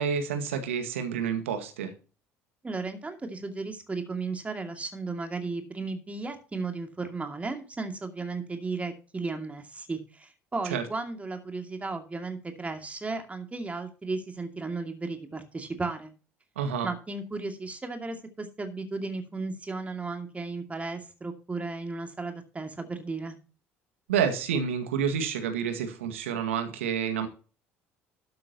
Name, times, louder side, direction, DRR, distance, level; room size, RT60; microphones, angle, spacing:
voice 1, 0.0-1.9 10.7-10.8 16.6-16.9 24.1-27.3, right 7 dB, 75° right, 7 dB, 1.9 m, -29 dB
voice 2, 2.6-16.1 16.8-23.4, right 3 dB, 20° right, 5 dB, 2.4 m, -35 dB
13.0 x 9.4 x 2.9 m, 0.36 s
figure-of-eight pair, 60°, 7 cm